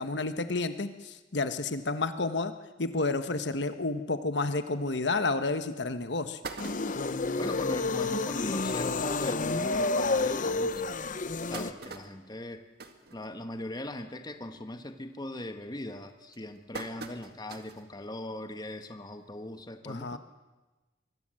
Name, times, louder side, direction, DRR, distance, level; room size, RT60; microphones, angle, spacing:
voice 1, 0.0-2.5 2.8-6.4 19.8-20.2, left 3 dB, 75° left, 9 dB, 1.3 m, -30 dB
sound 1, 5.3-5.4 5.9-6.0 6.2-7.3 7.8-7.9 8.2-8.3 8.6-8.8 9.5-9.6 10.1-10.2 11.0-13.8 14.2-14.5 14.9-15.3 15.9-17.9 18.3-18.4 19.6-19.7, right 3 dB, 60° right, 2.0 m, -44 dB
sound 2, 6.6-11.7, left 3 dB, 45° left, 0.9 m, -30 dB
voice 2, 7.4-10.9 11.5-12.6 13.1-20.2, left 1 dB, 25° left, 7 dB, 1.5 m, -40 dB
24.5 x 21.0 x 7.7 m, 1.2 s
head